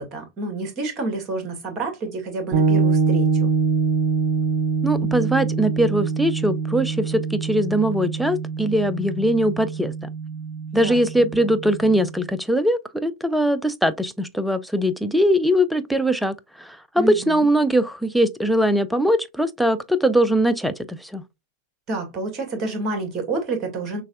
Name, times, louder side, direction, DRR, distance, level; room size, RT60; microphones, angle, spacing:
voice 1, 0.0-3.5 10.8-11.3 17.0-17.5 21.9-24.0, right 3 dB, 25° right, 1.8 m, -29 dB
sound 1, 2.5-12.2, right 5 dB, 40° right, 1.5 m, -24 dB
voice 2, 4.8-9.9 10.7-21.2, equal, ahead, 0.4 m, -21 dB
6.1 x 2.6 x 2.4 m
figure-of-eight pair, 90°, 0 cm